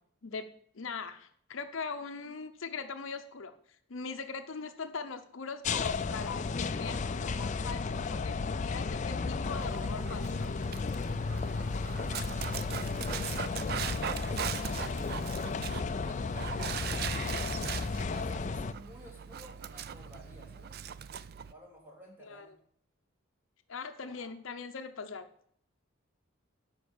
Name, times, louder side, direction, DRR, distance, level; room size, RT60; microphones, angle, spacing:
voice 1, 0.7-3.5 3.9-10.5 22.3-22.4 23.7-25.3, left 5 dB, 70° left, 8 dB, 0.7 m, -41 dB
sound 1, 5.6-18.7, left 4 dB, 35° left, 0.4 m, -34 dB
Dog, 9.4-21.5, right 8 dB, 45° right, 0.3 m, -40 dB
voice 2, 13.7-16.9 17.8-20.8 21.5-22.5 24.0-24.3, equal, 10° right, -2 dB, 2.7 m, -55 dB
9.9 x 5.3 x 7.0 m, 0.65 s
head